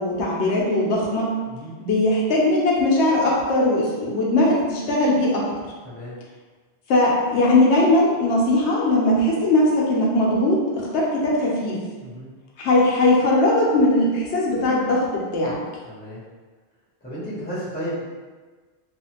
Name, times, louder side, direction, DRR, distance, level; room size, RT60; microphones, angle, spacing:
voice 1, 0.0-1.3 1.8-5.4 6.9-11.8 12.6-15.6, left 1 dB, 80° left, -3 dB, 0.9 m, -19 dB
voice 2, 15.8-16.2 17.0-18.0, equal, 10° left, -10 dB, 0.8 m, -33 dB
2.4 x 2.4 x 2.7 m, 1.4 s
omnidirectional pair, 1.1 m